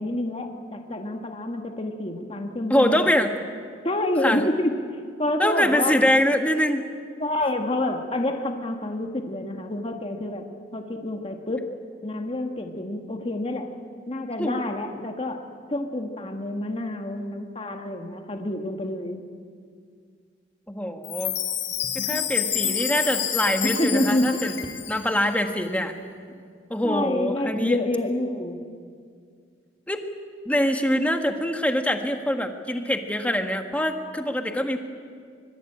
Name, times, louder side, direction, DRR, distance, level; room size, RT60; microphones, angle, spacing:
voice 1, 0.0-3.1 3.8-6.0 7.2-10.5 10.7-11.7 12.0-13.7 14.1-15.4 15.7-19.2 23.6-24.6 26.8-28.6, left 1 dB, 30° left, 3 dB, 1.6 m, -28 dB
voice 2, 2.7-3.3 4.2-4.4 5.4-6.8 14.4-14.7 20.7-21.3 21.9-24.5 24.9-25.9 26.7-27.8 29.9-30.1 30.4-34.8, left 1 dB, 10° left, 5 dB, 1.5 m, -24 dB
Chime, 21.0-25.3, left 10 dB, 90° left, 4.9 m, -29 dB
sound 1, 21.8-22.3 22.6-23.1 23.5-23.9 24.3-25.1, left 1 dB, 65° left, 1.4 m, -39 dB
24.5 x 22.5 x 8.6 m, 2.2 s
head